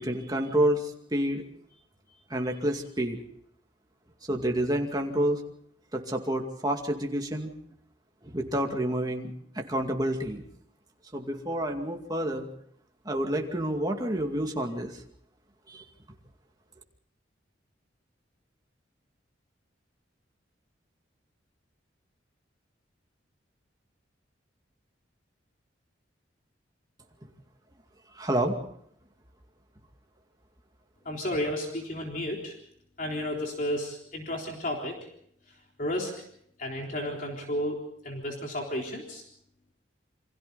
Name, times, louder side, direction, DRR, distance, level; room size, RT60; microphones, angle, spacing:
voice 1, 0.0-1.4 2.3-3.2 4.3-5.4 5.9-7.5 8.2-10.4 11.1-12.5 13.1-14.9 15.7-15.8 28.2-28.6, right 1 dB, 20° right, 2 dB, 2.3 m, -29 dB
voice 2, 31.1-32.6 33.0-35.0 35.8-36.1 36.6-37.8 38.0-39.2, left 1 dB, 45° left, 0 dB, 3.8 m, -32 dB
29.0 x 24.5 x 4.1 m, 0.69 s
head